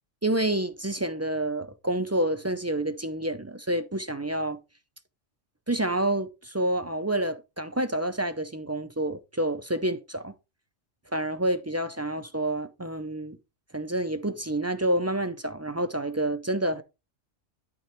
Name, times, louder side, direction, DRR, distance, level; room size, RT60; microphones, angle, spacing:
voice 1, 0.2-4.6 5.7-10.3 11.1-13.4 13.7-16.8, right 1 dB, 25° right, 0.4 m, -28 dB
12.0 x 5.7 x 3.1 m
omnidirectional pair, 1.3 m